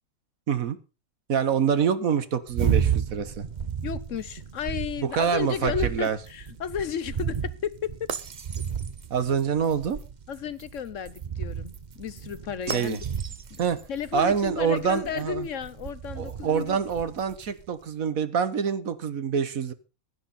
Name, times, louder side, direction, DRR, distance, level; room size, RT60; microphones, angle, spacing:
voice 1, 0.5-0.8 1.3-3.4 5.1-6.2 9.1-10.0 12.7-13.0 13.6-13.8 14.1-15.5 16.2-19.7, right 7 dB, 75° right, 1.6 m, -26 dB
sound 1, 2.5-17.7, right 8 dB, 40° right, 0.8 m, -33 dB
voice 2, 3.8-8.1 10.3-13.0 13.5-13.6 13.9-16.8, left 8 dB, 65° left, 1.1 m, -33 dB
16.0 x 11.5 x 4.2 m
omnidirectional pair, 1.5 m